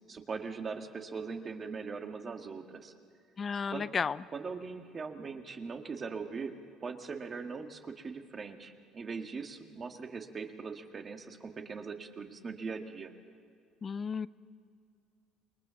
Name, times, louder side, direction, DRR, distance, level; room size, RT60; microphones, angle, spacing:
voice 1, 0.1-2.9 3.7-3.9 4.3-6.6 6.8-13.1, right 5 dB, 35° right, 5 dB, 1.9 m, -40 dB
voice 2, 3.4-4.2 13.8-14.3, left 6 dB, 35° left, 18 dB, 0.5 m, -33 dB
27.5 x 21.5 x 7.1 m, 2.4 s
cardioid pair, 100°, 0 cm